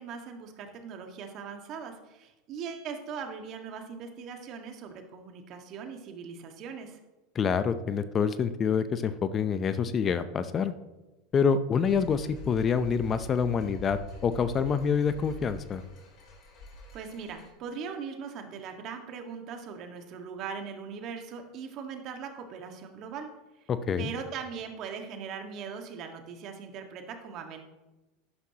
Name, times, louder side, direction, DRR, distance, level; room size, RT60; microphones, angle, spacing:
voice 1, 0.0-7.0 16.9-23.3 23.6-23.7 24.0-27.6, right 6 dB, 50° right, 5 dB, 1.6 m, -40 dB
voice 2, 7.3-10.7 11.3-15.8 23.7-24.1, left 6 dB, 35° left, 12 dB, 0.6 m, -27 dB
sound 1, 11.8-17.5, left 2 dB, 50° left, 3.5 m, -46 dB
12.0 x 9.7 x 2.9 m, 1.1 s
hypercardioid pair, 95°, 0 cm